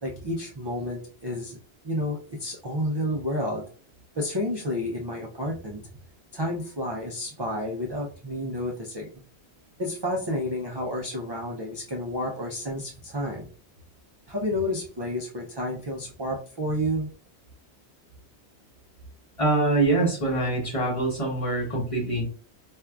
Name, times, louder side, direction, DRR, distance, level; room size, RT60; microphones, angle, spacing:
voice 1, 0.0-1.6 1.8-3.6 4.2-5.8 6.3-9.1 9.8-13.5 14.3-17.1, left 1 dB, 40° right, -2 dB, 0.4 m, -30 dB
voice 2, 19.4-22.2, right 2 dB, 35° left, -2 dB, 0.9 m, -24 dB
4.4 x 2.4 x 2.3 m, 0.41 s
omnidirectional pair, 1.1 m